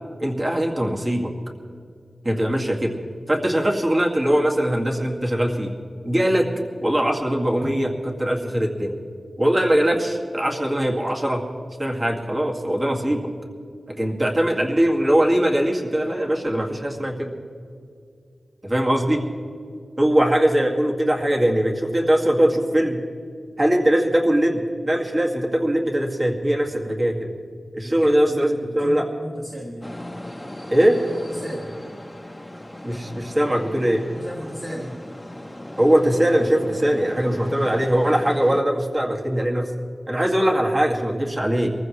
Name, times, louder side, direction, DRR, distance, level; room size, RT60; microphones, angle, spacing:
voice 1, 0.2-1.3 2.2-3.0 3.3-5.7 6.0-6.5 6.8-9.0 9.4-11.4 11.8-13.3 14.0-17.4 18.6-19.3 20.0-23.0 23.6-27.2 27.7-29.1 30.7-31.0 32.8-34.0 35.8-39.7 40.1-41.7, right 1 dB, 30° right, 0 dB, 2.2 m, -21 dB
voice 2, 27.8-30.2 31.3-31.7 34.0-35.0, equal, 15° right, -3 dB, 1.9 m, -36 dB
sound 1, 29.8-38.6, left 1 dB, 15° left, 1.0 m, -38 dB
24.5 x 14.5 x 3.2 m, 2.3 s
wide cardioid pair, 105°, 0 cm